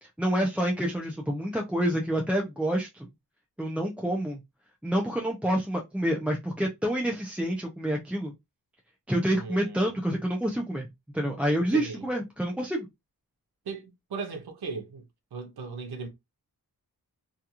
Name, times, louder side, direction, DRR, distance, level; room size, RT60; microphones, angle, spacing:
voice 1, 0.0-3.1 3.6-4.4 4.8-8.3 9.1-10.9 11.1-12.9, right 1 dB, 5° right, 0.4 m, -28 dB
voice 2, 9.4-10.0 11.6-12.1 13.7-15.0 15.3-16.1, right 4 dB, 80° right, 0.7 m, -37 dB
2.4 x 2.3 x 2.8 m
wide cardioid pair, 95°, 38 cm